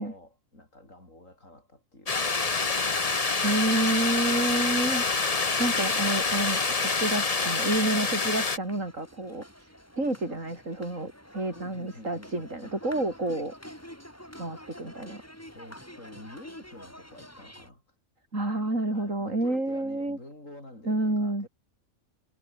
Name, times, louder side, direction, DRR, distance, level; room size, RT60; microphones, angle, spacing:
voice 1, 0.0-2.3 11.5-12.8 15.5-17.8 18.9-21.5, left 1 dB, 70° left, 8.6 m, -48 dB
sound 1, 2.1-8.6, left 4 dB, 30° left, 1.3 m, -26 dB
sound 2, 2.4-17.7, equal, 10° left, 7.2 m, -50 dB
voice 2, 3.4-5.0 5.6-13.5 14.4-15.2 18.3-20.2 20.8-21.5, right 2 dB, 70° right, 6.7 m, -29 dB
omnidirectional pair, 1.4 m